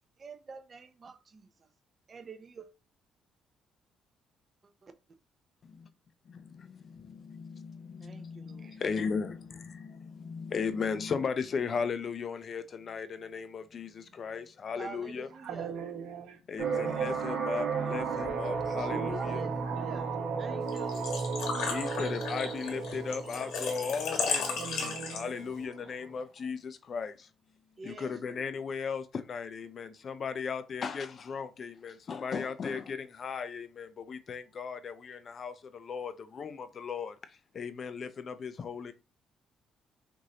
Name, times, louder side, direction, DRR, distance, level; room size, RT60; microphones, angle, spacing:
voice 1, 0.2-1.5 2.1-2.7 4.8-4.9 8.0-8.8 14.8-15.7 19.1-20.1 20.4-21.2 27.8-28.4, right 5 dB, 30° right, 0.6 m, -47 dB
voice 2, 6.9-15.3 16.5-19.5 21.7-27.1 27.8-37.1 37.5-38.9, left 5 dB, 40° left, 0.5 m, -36 dB
voice 3, 15.3-16.4 18.5-20.7 24.5-25.3, right 6 dB, 90° right, 1.2 m, -41 dB
sound 1, 16.6-26.1, right 5 dB, 70° right, 1.5 m, -34 dB
Engine / Trickle dribble / Fill (with liquid), 20.7-25.5, left 5 dB, 85° left, 1.5 m, -35 dB
6.1 x 2.6 x 2.9 m
cardioid pair, 145°, 0 cm